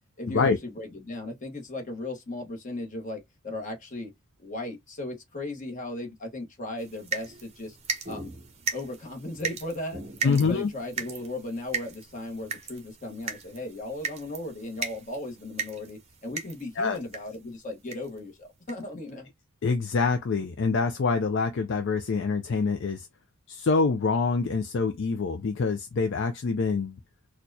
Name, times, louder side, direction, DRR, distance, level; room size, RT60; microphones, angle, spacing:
voice 1, 0.2-4.1 4.4-7.8 8.0-8.3 8.7-19.3, left 2 dB, 35° left, 1.1 m, -36 dB
sound 1, 6.8-17.4 17.9-18.2 18.7-18.8 19.1-19.2, right 5 dB, 30° right, 0.7 m, -37 dB
voice 2, 10.2-10.7 16.8-17.0 19.6-23.1 23.5-27.0, left 4 dB, 50° left, 0.4 m, -25 dB
4.3 x 2.3 x 2.6 m
head